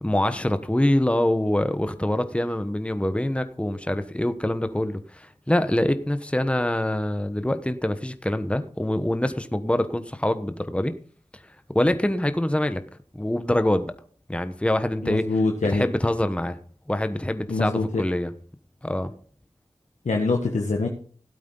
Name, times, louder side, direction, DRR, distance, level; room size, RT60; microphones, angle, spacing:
voice 1, 0.0-10.9 11.7-12.8 13.1-13.9 14.3-15.3 15.7-16.6 16.9-18.3 18.8-19.1, left 1 dB, 10° left, 1.1 m, -25 dB
voice 2, 15.0-15.8 17.5-18.0 20.0-20.9, left 3 dB, 85° left, 1.5 m, -24 dB
16.5 x 8.5 x 3.9 m
cardioid pair, 45°, 12 cm